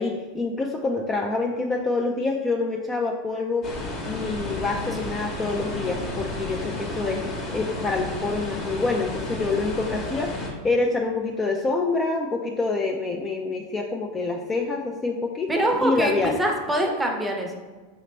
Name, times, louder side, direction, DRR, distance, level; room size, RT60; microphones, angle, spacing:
voice 1, 0.0-3.6 4.1-16.4, left 3 dB, 20° left, 1 dB, 0.4 m, -26 dB
sound 1, 3.6-10.5, left 2 dB, 35° left, 1.0 m, -32 dB
voice 2, 15.5-17.5, right 1 dB, 10° right, 1 dB, 0.7 m, -24 dB
4.9 x 2.9 x 3.2 m, 1.3 s
supercardioid pair, 125°, 0 cm